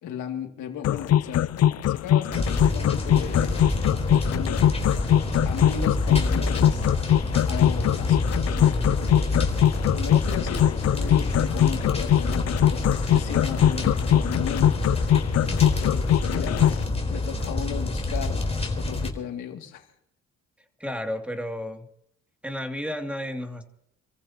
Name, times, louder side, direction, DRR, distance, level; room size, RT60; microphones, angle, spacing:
voice 1, 0.0-1.5 1.9-3.7 4.1-5.0 5.4-6.9 7.5-14.9 15.4-19.9, left 8 dB, 85° left, 2.6 m, -36 dB
sound 1, 0.8-16.8, left 11 dB, 55° left, 0.5 m, -21 dB
sound 2, 2.3-19.1, left 2 dB, 20° left, 4.0 m, -27 dB
voice 2, 20.8-21.9 22.4-23.6, equal, 5° right, 2.6 m, -32 dB
28.5 x 15.0 x 3.0 m
cardioid pair, 90°, 30 cm